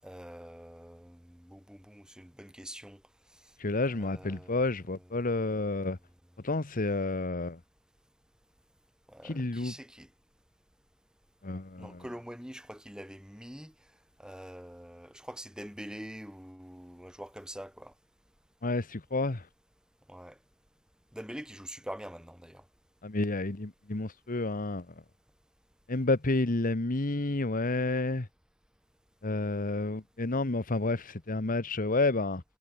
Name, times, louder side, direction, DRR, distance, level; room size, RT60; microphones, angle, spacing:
voice 1, 0.0-3.0 3.8-4.6 9.1-10.1 11.8-13.7 14.2-17.9 20.1-20.4 21.1-22.6, equal, 5° right, 5.9 m, -45 dB
voice 2, 3.6-6.0 6.4-7.6 9.2-9.7 11.4-12.0 18.6-19.5 23.0-24.8 25.9-28.3 29.2-32.4, left 2 dB, 40° left, 1.3 m, -30 dB
head